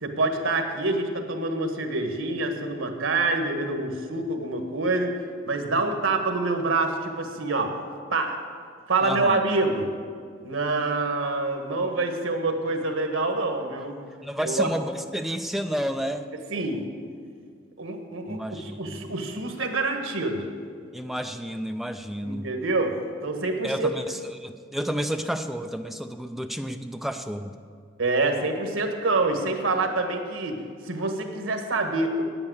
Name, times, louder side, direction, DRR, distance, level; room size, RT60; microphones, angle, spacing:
voice 1, 0.0-5.1 5.5-7.7 8.1-8.4 8.9-9.9 10.4-13.9 14.4-14.7 16.5-16.9 17.8-20.4 22.2-23.9 28.0-32.2, right 3 dB, 90° right, 4 dB, 1.4 m, -26 dB
voice 2, 9.0-9.4 14.2-16.3 18.3-19.1 20.9-22.5 23.6-27.5, equal, ahead, 7 dB, 0.4 m, -31 dB
9.3 x 8.7 x 8.0 m, 2.1 s
head